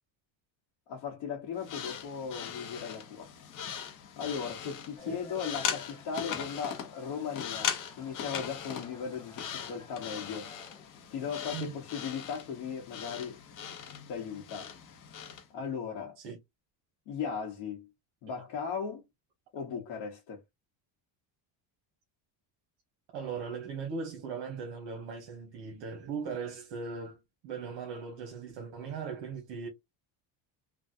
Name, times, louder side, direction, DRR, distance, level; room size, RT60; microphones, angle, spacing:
voice 1, 0.9-3.3 4.2-7.7 8.0-10.5 11.1-13.4 14.1-14.7 15.5-16.2 17.1-17.9 18.2-19.1 19.5-20.4, left 6 dB, 65° left, 1.1 m, -37 dB
sound 1, 1.6-15.5, left 8 dB, 40° left, 0.8 m, -40 dB
sound 2, 5.0-11.1, left 3 dB, 10° left, 0.5 m, -53 dB
voice 2, 23.1-27.2 27.4-29.7, right 5 dB, 65° right, 1.0 m, -39 dB
3.4 x 2.2 x 2.6 m
cardioid pair, 130°, 47 cm